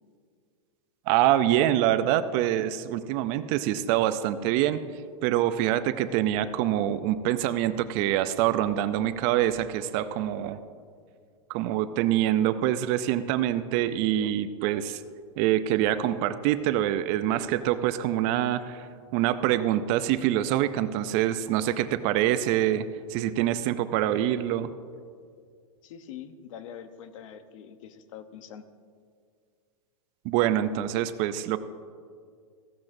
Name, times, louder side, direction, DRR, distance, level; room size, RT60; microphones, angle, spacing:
voice 1, 1.1-4.8 5.2-10.6 11.5-15.0 15.4-18.9 19.1-24.7 30.2-31.6, right 12 dB, 35° right, 13 dB, 0.4 m, -25 dB
voice 2, 25.8-28.7, left 8 dB, 60° left, 10 dB, 0.8 m, -44 dB
15.5 x 12.0 x 2.6 m, 2.1 s
hypercardioid pair, 140°, 18 cm